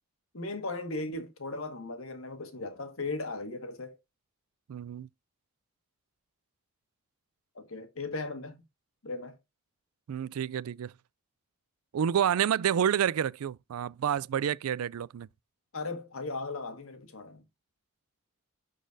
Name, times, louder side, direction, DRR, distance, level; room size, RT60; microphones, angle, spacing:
voice 1, 0.3-4.0 7.5-8.6 9.0-9.4 15.7-17.4, left 3 dB, 75° left, 1.6 m, -37 dB
voice 2, 4.7-5.1 10.1-10.9 11.9-15.3, right 9 dB, 85° right, 0.4 m, -29 dB
11.5 x 4.1 x 2.6 m
head